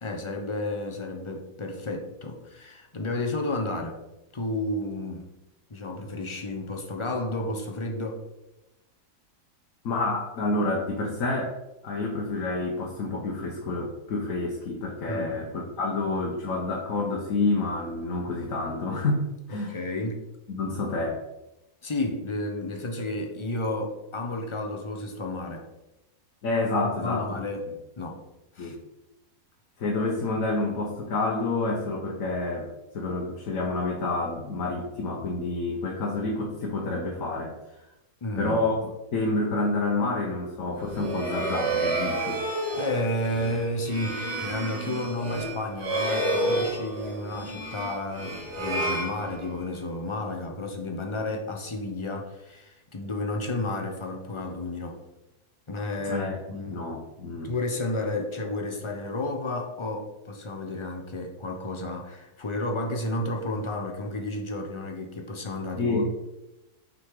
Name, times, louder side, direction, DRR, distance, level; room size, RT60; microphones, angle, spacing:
voice 1, 0.0-4.0 4.3-5.3 5.7-8.2 15.1-15.5 19.5-20.2 21.8-25.6 27.0-27.6 28.0-28.2 28.6-28.7 38.2-38.8 42.7-55.0 55.7-56.8 57.3-66.1, left 2 dB, 25° left, 3 dB, 0.6 m, -32 dB
voice 2, 9.8-11.6 11.8-15.5 15.8-19.8 20.5-21.1 26.4-27.4 28.6-28.8 29.8-32.7 32.9-37.5 38.4-42.4 56.0-57.5 65.8-66.1, left 2 dB, 60° left, -2 dB, 1.4 m, -28 dB
sound 1, 40.8-49.8, right 2 dB, 85° right, 2.4 m, -30 dB
6.2 x 4.1 x 4.8 m, 0.95 s
omnidirectional pair, 1.7 m